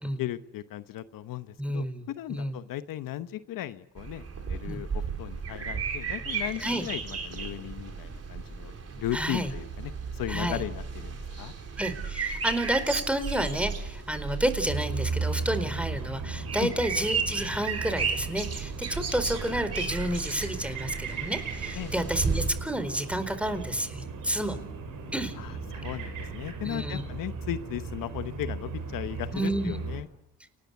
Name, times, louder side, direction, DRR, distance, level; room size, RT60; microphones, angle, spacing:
voice 1, 0.0-1.8 2.2-11.5 16.6-16.7 21.7-21.9 25.4-30.1, left 13 dB, 80° left, 13 dB, 1.0 m, -36 dB
voice 2, 1.6-2.6 4.7-4.8 6.6-6.8 9.1-9.5 10.3-10.6 11.8-24.6 25.1-25.3 26.6-27.0 29.3-29.8, right 1 dB, 5° right, 10 dB, 4.4 m, -30 dB
sound 1, 4.0-22.5, right 5 dB, 50° right, 4.6 m, -34 dB
sound 2, 14.7-30.0, right 4 dB, 75° right, 6.2 m, -36 dB
30.0 x 19.5 x 8.3 m, 0.83 s
supercardioid pair, 65°, 33 cm